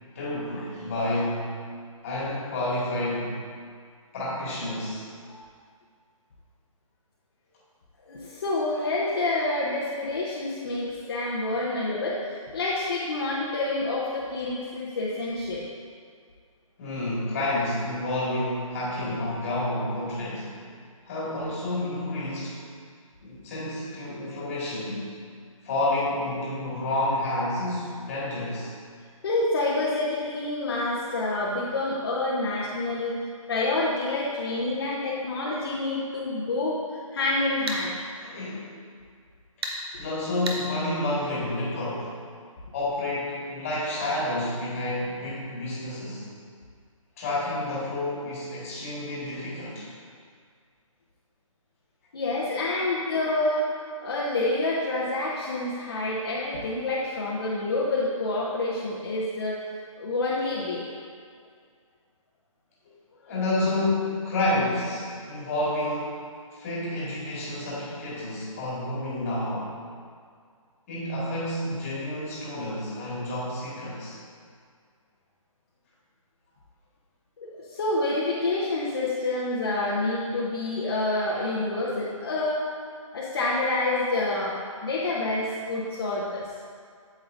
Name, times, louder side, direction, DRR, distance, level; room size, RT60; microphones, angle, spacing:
voice 1, 0.1-1.5 2.0-3.4 4.1-5.0 16.8-20.6 21.1-22.6 23.2-25.1 25.6-28.7 38.2-38.6 40.0-42.1 42.7-46.3 47.2-49.9 63.3-66.2 66.5-69.7 70.9-74.2, left 1 dB, 25° left, -7 dB, 1.8 m, -29 dB
voice 2, 8.1-15.7 29.2-33.1 33.5-37.9 52.1-59.6 60.0-60.9 77.4-82.6 83.1-86.5, left 2 dB, 40° left, -6 dB, 0.9 m, -28 dB
sound 1, 37.7-37.8 39.6-39.8 40.5-40.6, right 2 dB, 45° right, 1.0 m, -30 dB
8.6 x 7.7 x 2.6 m, 2.1 s
hypercardioid pair, 165°, 18 cm